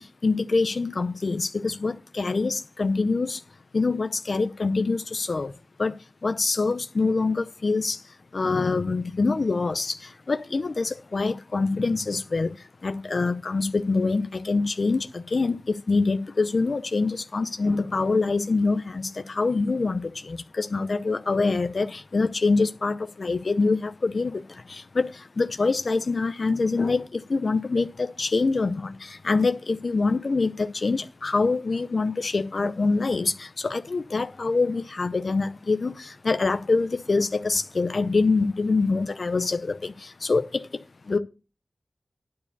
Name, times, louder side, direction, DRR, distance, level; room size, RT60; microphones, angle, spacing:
voice 1, 0.0-3.4 3.7-5.5 5.8-5.9 6.2-8.0 8.3-12.5 12.8-24.4 24.7-40.6 41.1-41.2, left 3 dB, 65° left, 0.6 m, -25 dB
9.5 x 4.8 x 6.7 m
wide cardioid pair, 70°, 0 cm